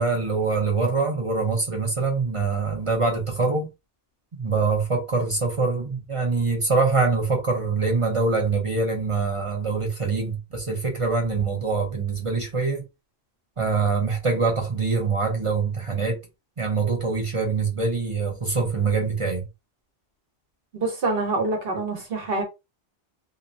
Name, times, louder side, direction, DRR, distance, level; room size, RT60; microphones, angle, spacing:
voice 1, 0.0-3.7 4.4-12.8 13.6-16.2 16.6-19.5, right 4 dB, 35° right, 0.5 m, -24 dB
voice 2, 20.7-22.4, right 3 dB, 55° right, 1.1 m, -26 dB
2.9 x 2.0 x 2.5 m
omnidirectional pair, 1.2 m